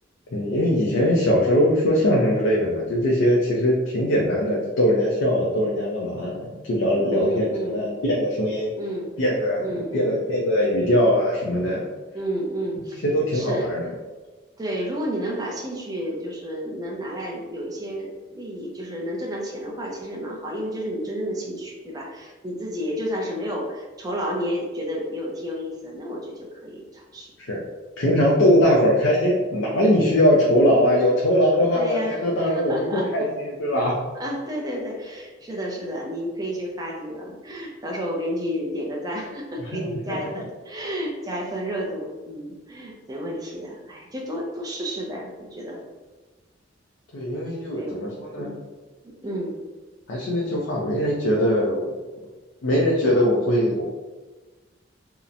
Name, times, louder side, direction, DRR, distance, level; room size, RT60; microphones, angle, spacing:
voice 1, 0.3-8.7 9.2-9.7 9.9-11.9 13.0-13.9 27.5-27.6 28.0-33.2 33.6-33.9 40.1-40.2 47.1-48.5 50.1-51.9 52.6-53.8, equal, 85° left, -4 dB, 0.5 m, -21 dB
voice 2, 7.1-7.8 8.8-9.1 9.6-10.1 12.1-13.1 13.3-13.7 14.6-27.3 31.6-33.1 34.2-45.8 47.7-48.6 49.0-49.6, equal, 20° right, -2 dB, 0.5 m, -31 dB
2.8 x 2.0 x 2.4 m, 1.3 s
head